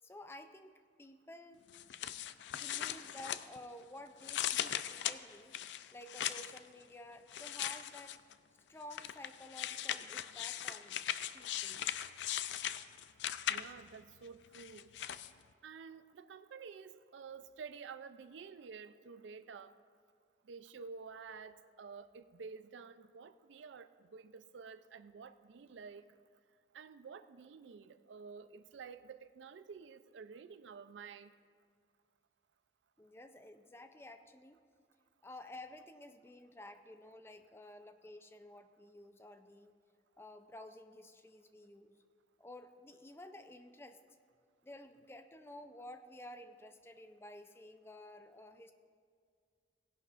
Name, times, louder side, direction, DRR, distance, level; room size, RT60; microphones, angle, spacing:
voice 1, 0.0-1.6 2.0-5.5 5.9-8.2 8.7-11.0 11.3-11.9 33.0-34.6 35.2-39.7 40.2-42.0 42.4-44.0 44.6-48.7, left 1 dB, 15° left, 8 dB, 0.4 m, -53 dB
sound 1, 1.7-3.8 4.2-6.6 7.3-8.3 8.9-13.9 14.5-15.3, left 11 dB, 75° left, 0.4 m, -39 dB
voice 2, 13.5-14.9 15.6-19.8 20.4-26.2 26.7-31.3, right 5 dB, 85° right, 12 dB, 0.4 m, -51 dB
18.0 x 11.0 x 2.5 m, 2.1 s
head